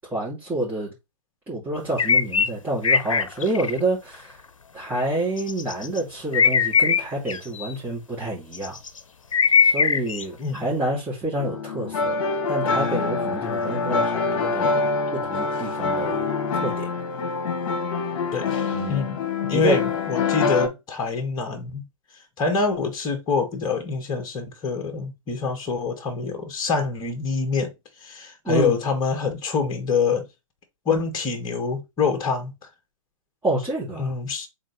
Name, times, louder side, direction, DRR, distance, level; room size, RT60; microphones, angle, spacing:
voice 1, 0.1-0.9 1.5-4.4 4.7-8.8 9.6-12.1 12.5-14.9 15.1-16.2 16.5-16.9 18.7-19.0 19.5-19.8 28.4-28.8 33.4-34.1, right 2 dB, 10° right, 2.9 m, -28 dB
sound 1, 2.0-2.5 2.8-3.8 5.4-6.0 6.3-7.7 8.5-9.0 9.3-10.2, left 6 dB, 70° left, 0.7 m, -20 dB
sound 2, 11.4-20.7, left 4 dB, 45° left, 2.0 m, -25 dB
voice 2, 19.4-21.8 22.4-27.7 28.0-30.3 30.9-32.5 34.0-34.5, left 5 dB, 25° left, 2.0 m, -25 dB
6.3 x 4.1 x 4.2 m
figure-of-eight pair, 120°, 17 cm